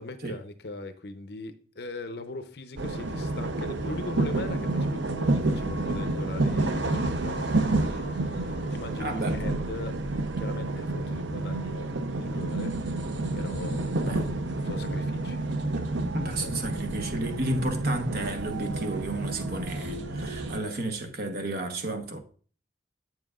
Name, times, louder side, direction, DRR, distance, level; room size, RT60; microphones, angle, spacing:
voice 1, 0.0-10.0 10.4-12.7 13.3-14.1 14.6-15.4 16.4-16.5, left 2 dB, 60° left, 0.7 m, -40 dB
sound 1, 2.8-20.6, right 2 dB, 90° right, 0.7 m, -29 dB
voice 2, 9.0-9.4 14.0-14.2 16.1-22.2, right 2 dB, 55° right, 1.1 m, -32 dB
8.0 x 7.3 x 2.5 m
head